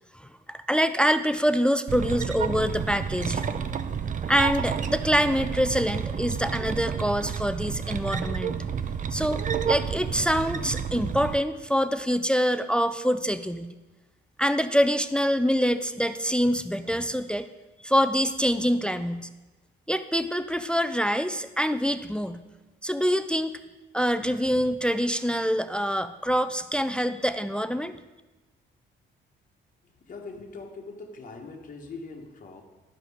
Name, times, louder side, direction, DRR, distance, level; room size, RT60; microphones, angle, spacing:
voice 1, 0.1-3.6 4.3-8.6 9.1-13.7 14.4-17.5 17.8-19.3 19.9-22.4 22.8-23.5 23.9-27.9, equal, 5° left, 11 dB, 0.4 m, -25 dB
sound 1, 1.9-11.4, right 7 dB, 40° right, 0.6 m, -30 dB
voice 2, 29.9-32.6, left 3 dB, 40° left, 1 dB, 1.2 m, -42 dB
11.5 x 5.1 x 4.8 m, 1.1 s
cardioid pair, 90°, 20 cm